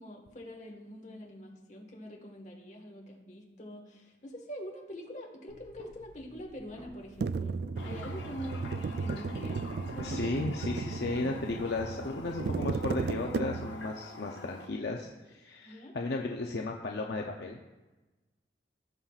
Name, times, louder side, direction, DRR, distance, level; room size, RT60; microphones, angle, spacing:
voice 1, 0.0-8.6 8.9-10.3 15.6-16.0, equal, 40° left, 0 dB, 1.4 m, -45 dB
sound 1, 5.5-7.9 8.2-12.8, equal, 20° left, 3.1 m, -55 dB
sound 2, 7.2-13.9, right 4 dB, 60° right, 0.3 m, -35 dB
Toilet flush, 7.8-14.7, left 2 dB, 90° left, 1.0 m, -47 dB
voice 2, 10.0-17.6, left 3 dB, 65° left, 1 dB, 0.6 m, -35 dB
17.0 x 5.7 x 2.4 m, 1.2 s
head